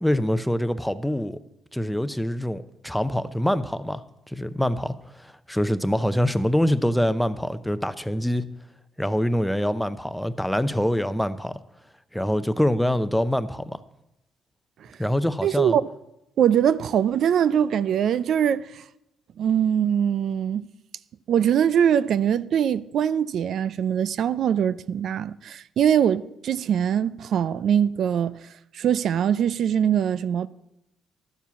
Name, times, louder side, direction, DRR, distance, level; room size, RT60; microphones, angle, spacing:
voice 1, 0.0-1.4 1.7-8.5 9.0-11.6 12.1-13.8 15.0-15.8, equal, 5° left, 0.7 m, -25 dB
voice 2, 15.4-15.8 16.4-18.8 19.4-20.7 21.3-28.4 28.7-30.5, right 9 dB, 70° right, 0.4 m, -22 dB
12.0 x 7.2 x 7.1 m
cardioid pair, 90°, 0 cm